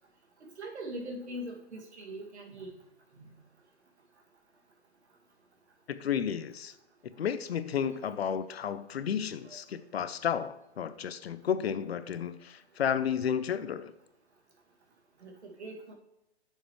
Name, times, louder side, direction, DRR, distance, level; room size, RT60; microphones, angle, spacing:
voice 1, 0.6-2.8 9.4-9.6 15.2-15.9, right 1 dB, 85° right, 1 dB, 2.1 m, -41 dB
voice 2, 5.9-6.7 7.2-13.9, left 8 dB, 70° left, 14 dB, 0.7 m, -32 dB
9.1 x 6.6 x 3.1 m, 0.90 s
hypercardioid pair, 140°, 33 cm